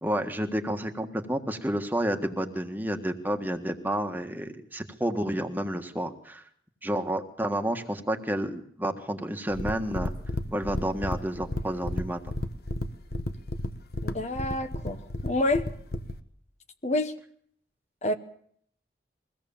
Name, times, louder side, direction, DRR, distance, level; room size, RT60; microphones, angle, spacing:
voice 1, 0.0-6.4 6.8-10.1 10.5-12.2, right 1 dB, 10° right, 5 dB, 1.6 m, -30 dB
sound 1, 9.5-16.2, left 1 dB, 60° left, 1.3 m, -33 dB
voice 2, 14.0-15.7 16.8-17.1 18.0-18.2, left 1 dB, 40° left, 9 dB, 1.1 m, -28 dB
22.5 x 17.0 x 7.2 m, 0.63 s
head